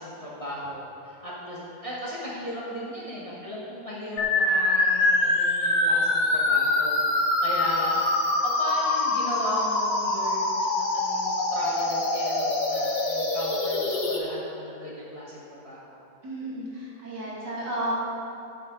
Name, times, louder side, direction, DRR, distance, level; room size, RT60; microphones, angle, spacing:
voice 1, 0.0-6.9 7.4-8.0 8.4-16.0, equal, 20° left, -6 dB, 1.2 m, -36 dB
sound 1, 4.2-14.2, left 2 dB, 80° left, 1.9 m, -24 dB
voice 2, 16.2-17.9, right 1 dB, 70° right, -6 dB, 2.8 m, -32 dB
12.5 x 7.1 x 3.9 m, 2.7 s
omnidirectional pair, 1.9 m